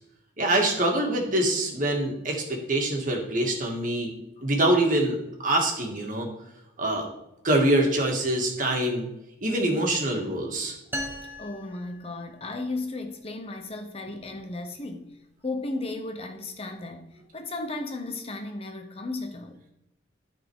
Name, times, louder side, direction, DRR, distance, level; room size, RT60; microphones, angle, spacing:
voice 1, 0.4-4.1 4.4-5.2 5.4-6.3 6.8-7.1 7.4-9.1 9.4-10.7, right 1 dB, 45° right, 1.9 m, -24 dB
sound 1, 10.9-12.7, equal, 10° right, 1.0 m, -37 dB
voice 2, 11.4-15.1 15.4-17.1 17.3-19.6, left 2 dB, 30° left, 0.8 m, -35 dB
12.5 x 4.3 x 4.7 m
head